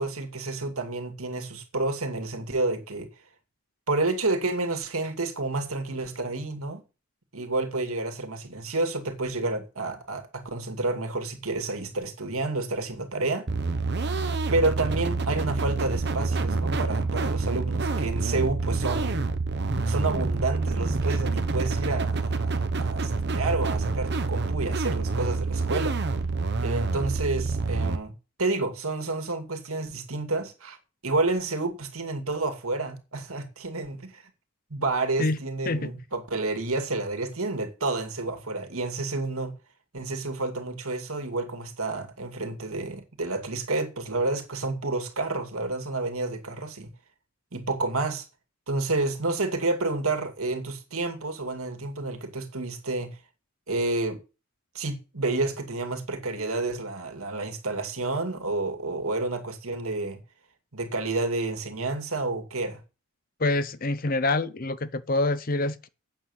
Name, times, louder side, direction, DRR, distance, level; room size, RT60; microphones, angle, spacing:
voice 1, 0.0-3.1 3.9-6.8 7.3-13.5 14.5-19.2 19.9-26.0 26.6-28.1 28.4-30.8 31.0-34.2 34.7-39.5 39.9-46.9 47.5-48.2 48.7-53.2 53.7-54.2 54.7-60.2 60.7-62.8, right 2 dB, 80° right, 2.4 m, -30 dB
sound 1, 13.5-28.0, right 3 dB, 50° right, 1.1 m, -27 dB
voice 2, 63.4-65.9, left 2 dB, 40° left, 0.7 m, -26 dB
8.7 x 7.2 x 8.0 m
head